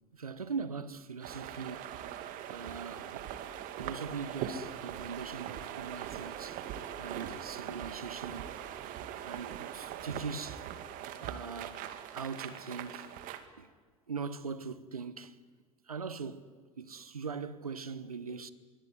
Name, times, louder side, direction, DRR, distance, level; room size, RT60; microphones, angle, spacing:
voice 1, 0.1-2.0 2.5-3.3 3.8-6.6 7.0-8.5 9.2-10.6 11.2-11.8 12.1-13.1 13.6-13.7 14.1-15.4 15.9-18.5, right 5 dB, 85° right, 1.3 m, -41 dB
sound 1, 1.2-13.4, right 10 dB, 50° right, 2.3 m, -41 dB
26.0 x 23.0 x 9.6 m
figure-of-eight pair, 80°, 18 cm